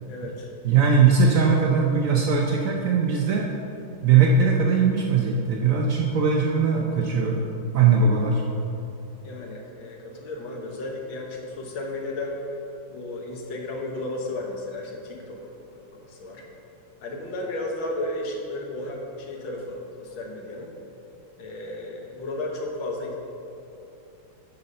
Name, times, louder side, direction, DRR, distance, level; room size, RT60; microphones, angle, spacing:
voice 1, 0.1-0.5 9.2-12.4 12.9-16.4 17.0-20.7 21.4-23.2, left 2 dB, 70° left, 0 dB, 1.9 m, -34 dB
voice 2, 0.6-3.5 4.0-8.4, right 5 dB, 75° right, 0 dB, 0.7 m, -20 dB
8.2 x 5.6 x 6.5 m, 2.8 s
omnidirectional pair, 2.3 m